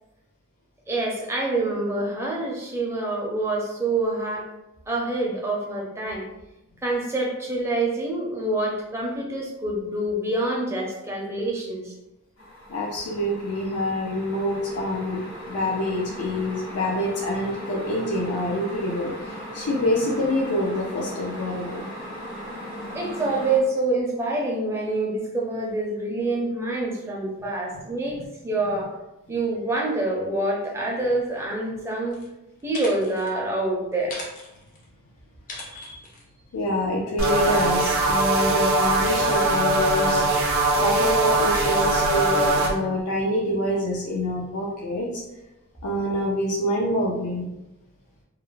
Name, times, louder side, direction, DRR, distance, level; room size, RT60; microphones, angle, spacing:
voice 1, 0.9-4.4 4.9-6.2 6.8-11.9 22.9-28.2 28.4-28.9 29.3-32.2 32.6-34.2, right 2 dB, 10° right, -2 dB, 0.4 m, -26 dB
sound 1, 12.4-23.6, equal, 70° left, 1.2 m, -38 dB
voice 2, 12.7-15.2 15.5-21.9 35.5-35.9 36.5-40.2 40.7-45.2 45.8-47.5, left 1 dB, 90° left, -2 dB, 0.4 m, -26 dB
sound 2, 32.1-32.3 32.6-33.3 34.0-34.9 35.5-36.2 37.2-37.3, left 2 dB, 35° left, 0.5 m, -39 dB
sound 3, 37.2-42.7, right 2 dB, 65° right, 0.5 m, -21 dB
2.4 x 2.0 x 3.0 m, 0.93 s
head